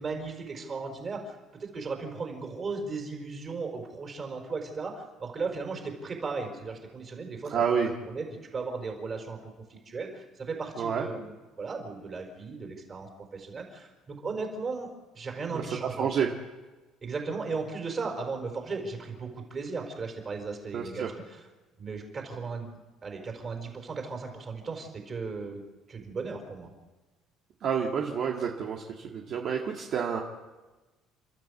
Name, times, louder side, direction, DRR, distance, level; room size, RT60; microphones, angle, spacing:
voice 1, 0.0-8.3 8.5-9.4 9.7-11.3 11.6-14.9 15.1-16.1 17.0-21.0 21.3-21.4 21.8-25.6 25.9-26.7, right 4 dB, 30° right, 3 dB, 4.7 m, -36 dB
voice 2, 7.5-7.9 10.8-11.1 15.5-16.3 20.7-21.1 27.6-30.2, right 7 dB, 50° right, 0 dB, 1.9 m, -29 dB
30.0 x 13.5 x 8.3 m, 1.2 s
cardioid pair, 140°, 0 cm